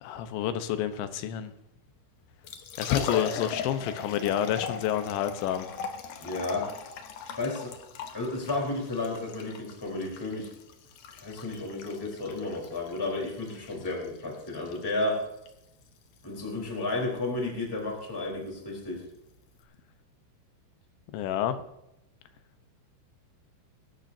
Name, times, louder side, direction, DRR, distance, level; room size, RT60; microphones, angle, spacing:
voice 1, 0.0-1.5 2.8-5.7 21.1-21.6, left 10 dB, 85° left, 10 dB, 3.3 m, -29 dB
Liquid, 2.3-19.6, left 6 dB, 70° left, 2.1 m, -40 dB
voice 2, 6.2-6.7 7.2-7.7 8.1-10.5 11.2-15.2 16.2-19.0, left 2 dB, 5° left, -2 dB, 3.2 m, -32 dB
24.0 x 12.0 x 2.7 m, 0.85 s
omnidirectional pair, 5.2 m